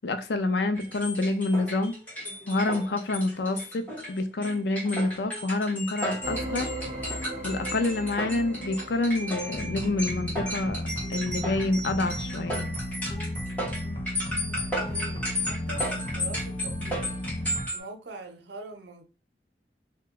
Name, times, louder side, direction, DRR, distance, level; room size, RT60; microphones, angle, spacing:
voice 1, 0.0-1.9 2.5-6.7 7.4-10.8 11.1-12.7, left 2 dB, 75° left, 0.5 m, -27 dB
sound 1, 0.7-17.8, equal, 10° left, 1.1 m, -34 dB
sound 2, 6.2-10.5, right 1 dB, 35° right, 0.8 m, -38 dB
sound 3, 9.5-17.6, left 1 dB, 30° left, 0.6 m, -34 dB
voice 2, 14.5-17.1 17.7-19.0, right 2 dB, 80° right, 0.6 m, -43 dB
2.8 x 2.2 x 3.6 m
head